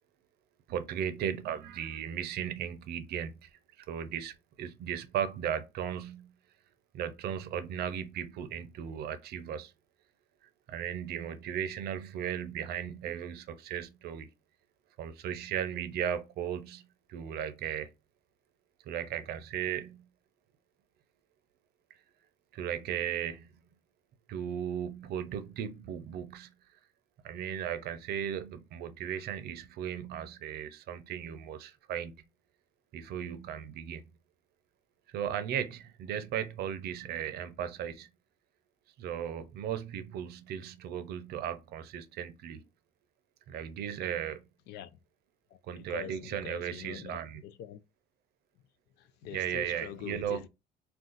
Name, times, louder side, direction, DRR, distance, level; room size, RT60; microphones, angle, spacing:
voice 1, 0.7-6.3 6.9-9.7 10.7-14.3 15.0-16.8 17.1-17.9 18.9-20.1 22.5-23.6 24.3-26.5 27.2-32.1 32.9-34.1 35.1-38.1 39.0-42.6 43.5-44.4 45.7-47.4 49.3-50.4, right 9 dB, 70° right, 0.6 m, -36 dB
voice 2, 44.7-45.0 45.5-47.8 49.0-50.5, left 10 dB, 80° left, 0.4 m, -44 dB
2.5 x 2.3 x 3.8 m
cardioid pair, 110°, 17 cm